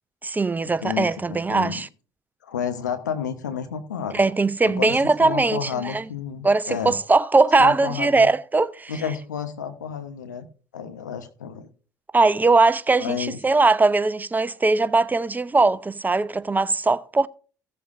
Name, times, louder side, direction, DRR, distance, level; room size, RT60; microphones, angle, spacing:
voice 1, 0.2-1.9 4.1-6.0 6.4-8.9 12.1-17.3, right 3 dB, 20° right, 0.6 m, -20 dB
voice 2, 1.5-1.8 2.4-4.2 4.6-7.0 7.6-8.3 8.9-10.4 10.7-11.7 13.0-13.4, left 7 dB, 85° left, 1.1 m, -31 dB
16.0 x 7.6 x 2.6 m
hypercardioid pair, 60°, 9 cm